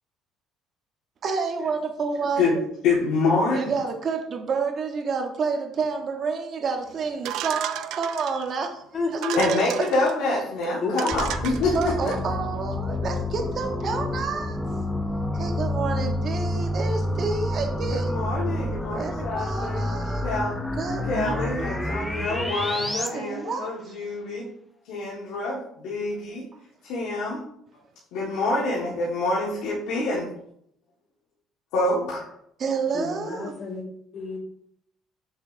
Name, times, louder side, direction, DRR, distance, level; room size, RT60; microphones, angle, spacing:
voice 1, 1.2-2.4 3.5-8.8 9.1-9.2 11.7-14.6 15.3-18.2 18.9-20.3 20.8-21.8 23.1-23.9 32.6-33.5, right 5 dB, 40° right, 3 dB, 1.1 m, -29 dB
voice 2, 2.8-3.7 9.4-12.1 17.9-19.9 20.2-20.6 21.1-24.5 24.9-26.5 26.8-27.4 28.1-30.3 31.7-32.2, left 2 dB, 85° left, -5 dB, 1.7 m, -26 dB
sound 1, 7.2-8.6 9.1-10.1 10.6-10.7 11.0-12.2, right 11 dB, 75° right, 0.4 m, -34 dB
voice 3, 8.9-9.5 10.8-11.4 32.9-33.8 34.1-34.4, left 3 dB, 40° left, -1 dB, 2.0 m, -30 dB
sound 2, 11.1-23.1, left 1 dB, 5° left, 0.7 m, -29 dB
7.2 x 6.2 x 2.7 m, 0.71 s
cardioid pair, 130°, 0 cm